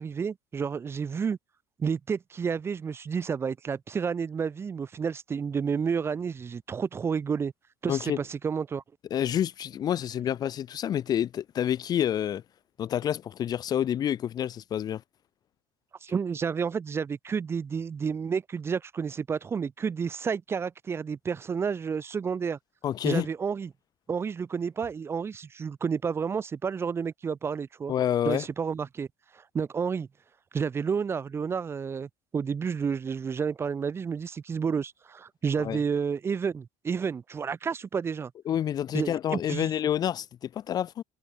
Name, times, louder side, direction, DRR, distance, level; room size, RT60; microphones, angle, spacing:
voice 1, 0.0-1.4 1.8-7.5 7.8-8.8 16.0-22.6 23.0-23.7 24.1-27.9 28.3-29.1 29.3-30.1 30.5-38.3 38.9-39.7, right 6 dB, 20° right, 2.8 m, -30 dB
voice 2, 7.9-8.2 9.1-12.4 12.8-15.0 22.8-23.3 27.9-28.5 35.6-35.8 38.5-41.0, left 10 dB, 30° left, 2.9 m, -28 dB
cardioid pair, 180°, 13 cm